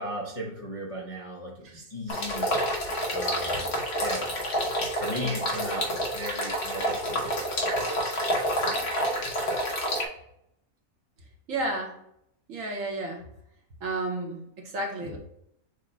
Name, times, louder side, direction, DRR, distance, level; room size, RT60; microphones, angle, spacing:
voice 1, 0.0-2.5 3.1-4.3 4.6-4.7 4.9-8.9, equal, 35° left, -5 dB, 0.5 m, -37 dB
sound 1, 2.1-10.0, equal, 55° left, 1.0 m, -28 dB
voice 2, 11.5-12.0 12.5-13.3 13.8-15.2, right 2 dB, 70° right, 0 dB, 1.4 m, -32 dB
6.3 x 2.2 x 3.9 m, 0.75 s
omnidirectional pair, 1.5 m